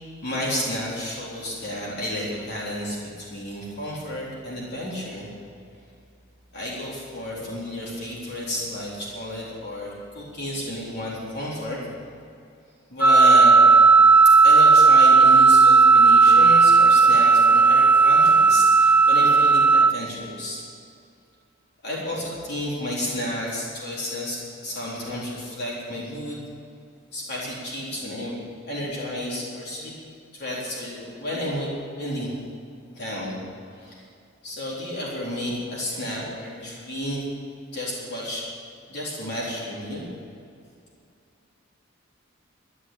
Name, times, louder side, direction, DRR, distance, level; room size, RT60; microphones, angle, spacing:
voice 1, 0.2-5.3 6.5-11.8 12.9-13.6 14.4-20.6 21.8-26.4 27.1-28.4 28.7-29.9 30.3-31.7 31.9-32.4 32.9-33.4 33.7-34.0 34.4-37.2 37.7-38.4 38.9-40.0, left 1 dB, 55° left, -6 dB, 4.1 m, -31 dB
Wind instrument woodwind instrument, 13.0-19.9, right 4 dB, 10° right, 0.4 m, -14 dB
12.5 x 11.0 x 8.7 m, 2.5 s
head